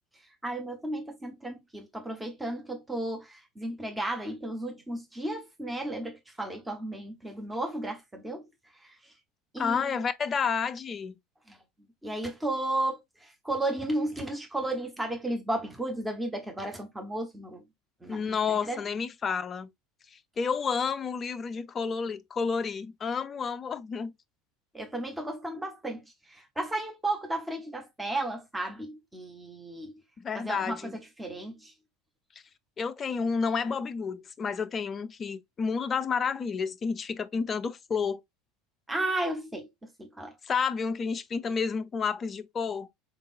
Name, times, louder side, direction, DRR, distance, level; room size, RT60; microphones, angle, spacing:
voice 1, 0.4-8.4 8.8-9.0 9.5-9.9 11.5-11.6 12.0-17.6 18.0-18.8 24.7-26.0 26.3-29.9 30.3-30.9 31.2-31.7 38.9-39.7 40.0-40.3, right 1 dB, 10° right, 1.1 m, -34 dB
voice 2, 9.6-11.1 18.1-19.7 20.1-24.1 30.2-30.9 32.8-38.2 40.4-42.9, left 5 dB, 30° left, 0.4 m, -30 dB
3.8 x 3.7 x 2.5 m
figure-of-eight pair, 70°, 0 cm